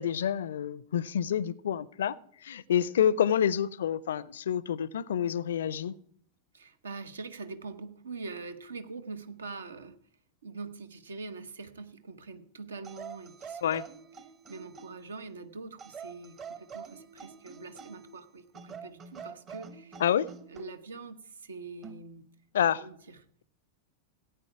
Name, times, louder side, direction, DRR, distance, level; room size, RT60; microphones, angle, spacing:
voice 1, 0.0-2.2 2.4-5.9 13.6-13.8 20.0-20.3 22.5-22.8, left 9 dB, 60° left, 23 dB, 0.5 m, -28 dB
voice 2, 6.5-10.0 10.4-13.8 14.5-20.0 20.5-22.3 22.7-23.2, right 4 dB, 70° right, 11 dB, 1.0 m, -43 dB
sound 1, 12.8-15.1 15.8-18.1 18.5-20.7 21.8-22.1, right 6 dB, 30° right, 1.1 m, -46 dB
15.5 x 9.2 x 4.7 m, 0.64 s
figure-of-eight pair, 90°, 0 cm